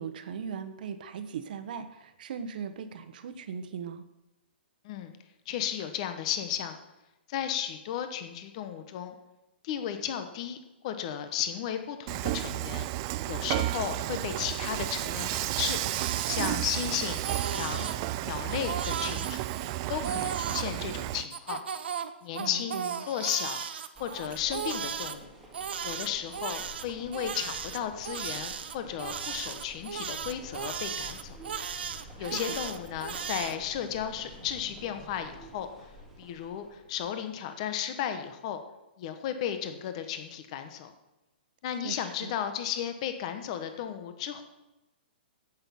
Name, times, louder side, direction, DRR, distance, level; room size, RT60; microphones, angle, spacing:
voice 1, 0.0-4.0 22.4-22.9 32.2-32.6 41.8-42.3, right 7 dB, 50° right, 10 dB, 1.1 m, -39 dB
voice 2, 5.5-6.8 7.3-9.1 9.6-10.6 10.8-12.9 13.2-15.8 16.3-17.2 17.5-17.9 18.2-19.5 19.9-21.6 22.2-23.6 24.0-25.3 25.8-31.4 32.2-35.7 36.2-38.6 39.0-40.9 41.6-44.4, left 9 dB, 35° left, 8 dB, 1.1 m, -34 dB
Dishes pots and pans / Frying (food), 12.1-21.3, right 16 dB, 30° right, 0.4 m, -32 dB
Crying sobbing, 15.5-16.9 17.1-18.0 18.5-20.7 21.3-25.2 25.5-33.6, right 7 dB, 75° right, 1.1 m, -36 dB
sound 1, 23.9-37.1, right 1 dB, ahead, 2.1 m, -49 dB
10.0 x 8.3 x 7.1 m, 0.97 s
hypercardioid pair, 165°, 6 cm